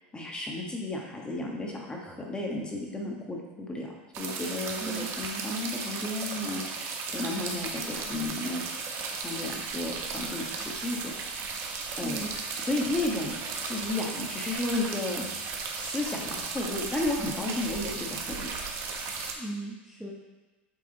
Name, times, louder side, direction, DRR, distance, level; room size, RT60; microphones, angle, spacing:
voice 1, 0.1-8.6 9.2-11.1 12.0-12.3 12.6-13.3 13.6-15.3 15.8-18.5, left 2 dB, 15° left, -1 dB, 1.3 m, -33 dB
sound 1, 4.1-19.3, right 4 dB, 50° right, 1.0 m, -35 dB
voice 2, 4.8-5.1 12.0-12.3 17.2-17.5 19.4-20.1, right 2 dB, 5° right, -5 dB, 1.1 m, -37 dB
7.8 x 3.5 x 4.0 m, 1.2 s
hypercardioid pair, 100°, 6 cm